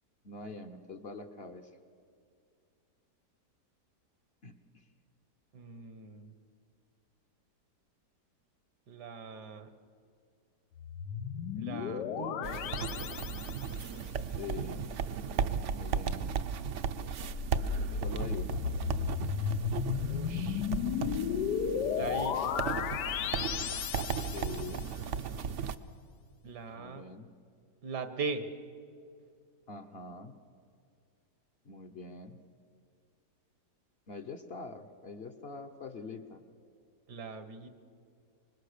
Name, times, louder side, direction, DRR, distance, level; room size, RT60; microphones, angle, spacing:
voice 1, 0.2-1.8 4.4-4.9 14.3-14.9 15.7-16.4 18.0-18.6 24.2-24.9 26.8-27.3 29.7-30.3 31.6-32.4 34.1-36.4, left 4 dB, 45° left, 6 dB, 0.9 m, -44 dB
voice 2, 5.5-6.3 8.9-9.7 11.6-12.6 17.6-18.2 20.1-20.6 21.9-22.4 26.4-27.0 27.8-28.4 37.1-37.7, right 4 dB, 75° right, 10 dB, 1.9 m, -40 dB
sound 1, 10.8-13.9 17.2-24.9, left 7 dB, 85° left, 1.4 m, -34 dB
sound 2, 12.4-25.7, right 6 dB, 60° right, 0.9 m, -36 dB
25.5 x 21.5 x 6.6 m, 2.3 s
omnidirectional pair, 1.8 m